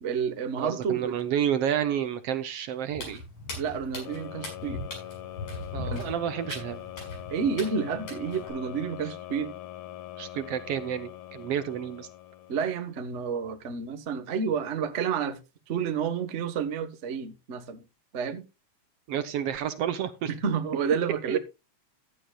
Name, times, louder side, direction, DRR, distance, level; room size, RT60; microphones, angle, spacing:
voice 1, 0.0-1.2 3.6-4.8 5.8-6.1 7.3-9.5 12.5-15.4 15.7-17.8 18.1-18.5 20.3-21.4, right 6 dB, 50° right, 0.8 m, -30 dB
voice 2, 0.6-3.2 5.7-6.8 10.2-12.1 19.1-20.3 21.3-21.4, right 9 dB, 70° right, 1.6 m, -30 dB
Walk footsteps, 2.9-8.5, left 2 dB, 65° left, 7.2 m, -39 dB
sound 1, 4.1-13.0, left 13 dB, 85° left, 2.4 m, -43 dB
15.0 x 11.5 x 2.3 m
omnidirectional pair, 3.3 m